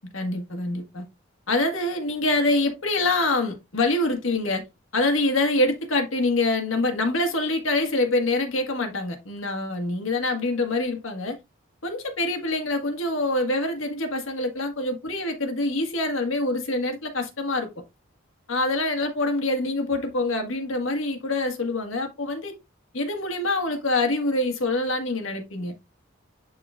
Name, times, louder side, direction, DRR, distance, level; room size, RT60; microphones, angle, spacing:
voice 1, 0.1-1.0 1.5-4.6 4.9-11.4 11.8-17.7 18.5-22.5 22.9-25.7, left 2 dB, 85° left, 1.6 m, -25 dB
11.0 x 3.9 x 2.4 m
head